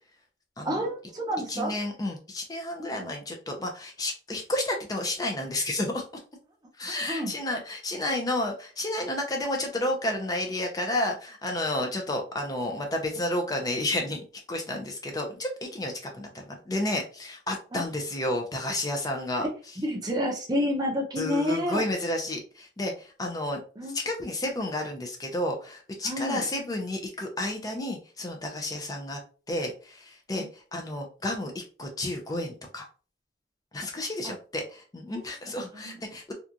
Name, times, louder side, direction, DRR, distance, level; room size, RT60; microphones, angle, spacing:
voice 1, 0.6-1.7 2.8-2.9 6.8-7.3 17.7-17.8 19.4-19.5 19.8-21.8 23.8-24.0 26.0-26.5 30.4-30.5 34.2-34.3 35.7-36.0, equal, 25° right, 0 dB, 0.6 m, -29 dB
voice 2, 1.5-6.0 6.8-14.2 14.5-19.5 21.2-23.6 23.9-29.2 29.5-30.5 30.7-32.9 33.7-36.3, left 1 dB, 20° left, 3 dB, 0.4 m, -31 dB
2.8 x 2.3 x 2.4 m, 0.37 s
head